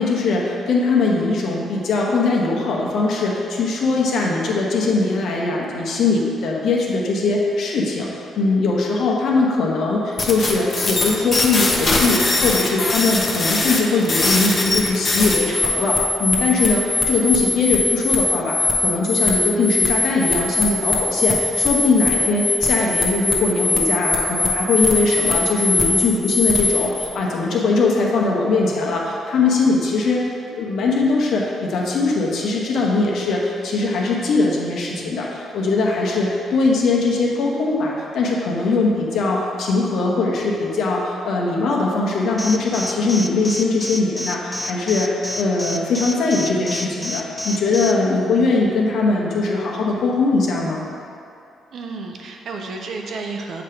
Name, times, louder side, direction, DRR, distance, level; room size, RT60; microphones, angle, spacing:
voice 1, 0.0-8.1 8.4-45.1 45.4-50.9, left 3 dB, 70° left, -2 dB, 1.0 m, -20 dB
sound 1, 10.2-27.0, left 3 dB, 40° left, 0.9 m, -21 dB
Alarm, 42.4-47.9, left 2 dB, 20° left, 0.5 m, -28 dB
voice 2, 51.7-53.6, right 3 dB, 65° right, 2 dB, 0.7 m, -31 dB
7.2 x 3.0 x 5.0 m, 2.7 s
cardioid pair, 90°, 0 cm